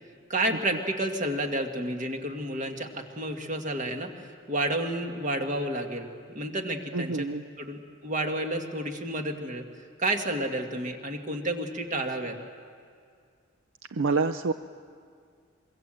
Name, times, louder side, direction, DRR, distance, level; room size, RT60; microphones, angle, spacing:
voice 1, 0.3-7.3 7.6-9.6 10.0-12.4, right 1 dB, 35° right, 4 dB, 2.0 m, -30 dB
voice 2, 6.9-7.4 13.9-14.5, right 4 dB, 70° right, 10 dB, 0.6 m, -27 dB
25.0 x 23.0 x 7.7 m, 2.2 s
head